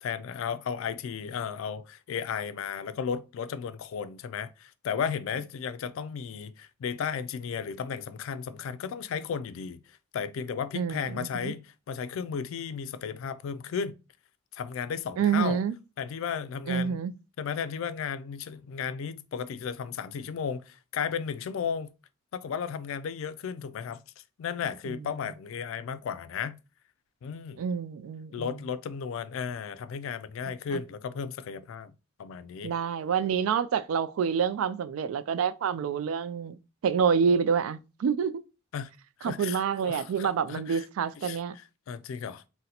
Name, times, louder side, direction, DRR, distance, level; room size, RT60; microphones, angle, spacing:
voice 1, 0.0-9.8 10.1-13.9 14.5-15.6 16.0-17.0 17.4-21.9 22.3-24.0 24.4-26.6 27.2-27.6 28.3-31.9 32.2-32.7 38.7-38.9 39.2-40.9 41.2-42.4, left 7 dB, 70° left, 0.3 m, -34 dB
voice 2, 10.7-11.5 15.2-15.7 16.7-17.1 24.9-25.0 27.6-28.5 30.7-30.8 32.6-36.6 36.8-38.4 39.2-41.6, right 7 dB, 85° right, 0.3 m, -27 dB
2.8 x 2.1 x 3.9 m
head